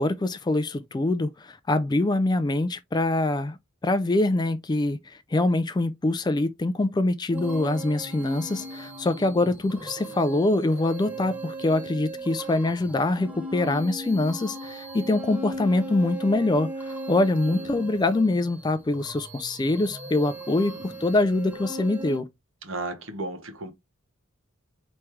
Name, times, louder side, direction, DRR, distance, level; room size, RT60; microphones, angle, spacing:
voice 1, 0.0-3.6 3.8-22.3, left 2 dB, 20° left, 0.3 m, -24 dB
sound 1, 7.3-22.2, equal, 10° right, 0.7 m, -38 dB
voice 2, 22.6-23.7, right 2 dB, 65° right, 0.9 m, -35 dB
4.5 x 3.1 x 3.4 m
head